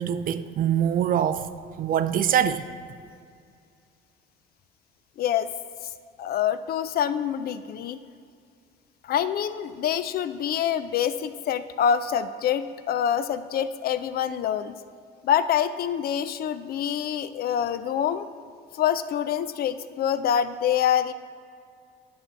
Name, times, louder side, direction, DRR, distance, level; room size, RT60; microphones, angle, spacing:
voice 1, 0.0-1.5 1.8-2.6, right 9 dB, 45° right, 0.4 m, -24 dB
voice 2, 5.2-5.5 6.2-8.0 9.0-14.8 15.2-18.3 18.7-21.1, left 9 dB, 50° left, 0.4 m, -26 dB
9.6 x 5.4 x 4.5 m
cardioid pair, 120°, 21 cm